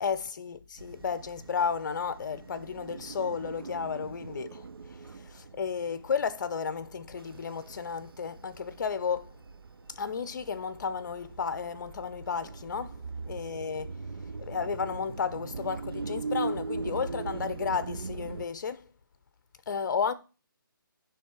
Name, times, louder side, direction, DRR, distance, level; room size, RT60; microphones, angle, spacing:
voice 1, 0.0-4.7 5.3-9.3 10.0-13.0 13.3-13.9 14.4-18.9 19.7-20.1, left 6 dB, 55° left, 0.7 m, -33 dB
sound 1, 0.8-18.5, right 4 dB, 85° right, 0.5 m, -41 dB
10.5 x 3.4 x 4.5 m
figure-of-eight pair, 150°, 12 cm